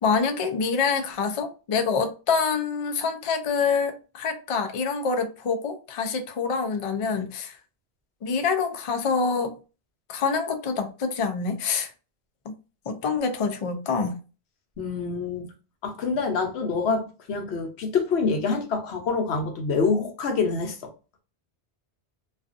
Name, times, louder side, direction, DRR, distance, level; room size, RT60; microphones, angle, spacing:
voice 1, 0.0-7.6 8.2-9.5 10.1-11.9 12.5-12.6 12.9-14.2, left 5 dB, 55° left, 0.3 m, -26 dB
voice 2, 14.8-15.5 15.8-20.9, left 4 dB, 80° left, 1.0 m, -26 dB
2.4 x 2.4 x 2.4 m
omnidirectional pair, 1.1 m